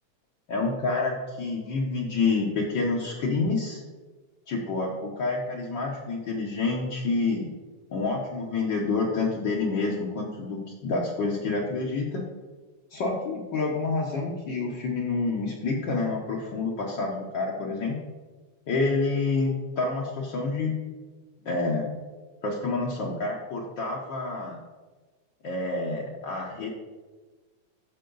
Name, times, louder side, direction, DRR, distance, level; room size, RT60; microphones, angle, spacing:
voice 1, 0.5-3.8 4.5-7.5 7.9-12.2 12.9-18.0 18.7-20.8 21.4-21.9 22.4-24.6 25.4-26.7, left 3 dB, 85° left, -2 dB, 1.0 m, -28 dB
13.5 x 4.7 x 3.9 m, 1.3 s
omnidirectional pair, 3.4 m